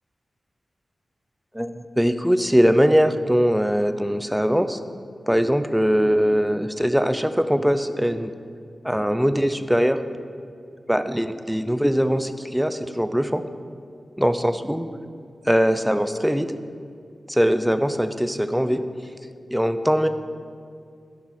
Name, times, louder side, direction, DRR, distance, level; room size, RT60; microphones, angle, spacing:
voice 1, 1.5-4.8 5.3-8.3 8.8-10.0 10.9-13.4 14.2-14.9 15.5-16.5 17.3-18.8 19.5-20.1, equal, ahead, 10 dB, 0.5 m, -21 dB
10.5 x 10.5 x 4.2 m, 2.3 s
wide cardioid pair, 110°, 0 cm